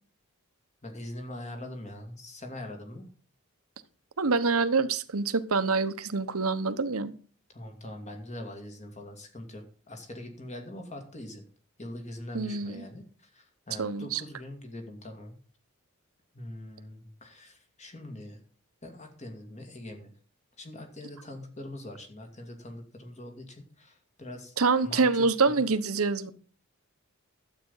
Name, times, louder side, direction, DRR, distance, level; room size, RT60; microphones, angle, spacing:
voice 1, 0.8-3.1 7.5-11.4 11.8-15.4 16.3-18.4 18.8-20.1 20.6-24.6 24.8-25.6, left 1 dB, 30° left, 2.4 m, -43 dB
voice 2, 4.2-7.1 12.3-12.8 13.8-14.2 24.6-26.3, right 4 dB, 90° right, 1.0 m, -26 dB
12.0 x 8.5 x 5.6 m
head